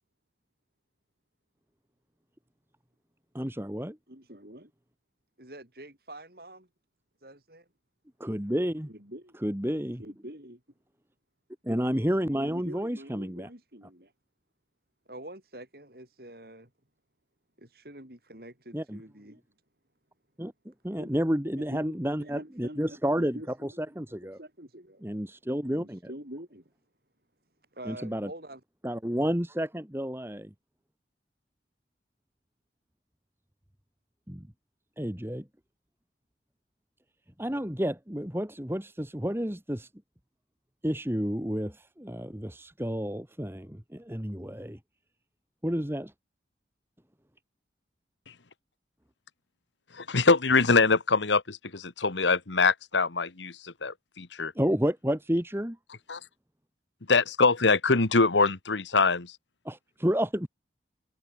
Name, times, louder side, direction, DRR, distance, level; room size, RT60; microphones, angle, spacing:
voice 1, 3.3-4.0 8.2-8.9 9.4-10.0 11.6-13.5 18.7-19.0 20.4-24.4 25.0-26.1 27.8-28.3 28.8-30.5 34.3-34.5 35.0-35.5 37.4-39.9 40.8-44.8 45.6-46.1 54.5-55.8 59.6-60.5, equal, 15° right, 1.7 m, -30 dB
voice 2, 4.1-4.7 5.4-6.7 7.2-7.7 8.9-9.4 10.0-10.6 12.3-14.1 15.1-16.7 17.6-19.4 21.0-21.1 21.5-23.8 24.2-25.0 25.6-26.7 27.7-28.6, right 1 dB, 55° right, 5.4 m, -45 dB
voice 3, 49.9-54.5 56.1-56.2 57.1-59.4, left 4 dB, 85° left, 1.5 m, -24 dB
head